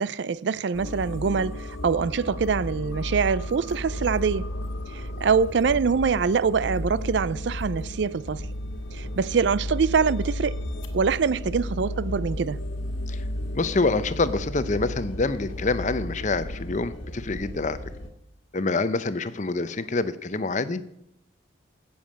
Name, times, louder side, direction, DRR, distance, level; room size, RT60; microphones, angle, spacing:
voice 1, 0.0-4.5 4.9-8.5 8.9-10.6 10.9-12.6, right 5 dB, 65° right, 0.4 m, -24 dB
sound 1, 0.7-18.1, left 1 dB, 90° left, 1.7 m, -33 dB
voice 2, 13.5-17.8 18.5-20.8, left 3 dB, 40° left, 0.6 m, -26 dB
16.0 x 7.2 x 6.3 m
head